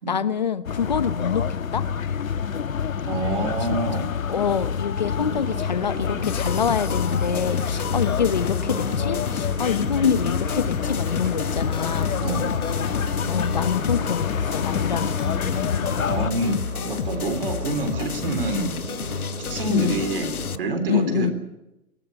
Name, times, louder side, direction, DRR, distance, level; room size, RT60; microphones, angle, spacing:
voice 1, 0.1-1.8 3.3-3.5 4.3-12.2 13.3-15.3 19.7-20.0 20.9-21.3, left 7 dB, 30° left, 13 dB, 0.9 m, -26 dB
sound 1, 0.6-16.3, left 7 dB, 65° left, 1.4 m, -27 dB
voice 2, 3.1-4.0 12.2-12.5 16.1-18.7 19.5-21.3, right 2 dB, 40° right, 9 dB, 3.7 m, -27 dB
Engine, 5.0-20.7, right 5 dB, 65° right, 3.9 m, -38 dB
sound 2, 6.2-20.6, left 7 dB, 85° left, 1.3 m, -30 dB
21.0 x 18.5 x 8.9 m, 0.89 s
hypercardioid pair, 175°, 43 cm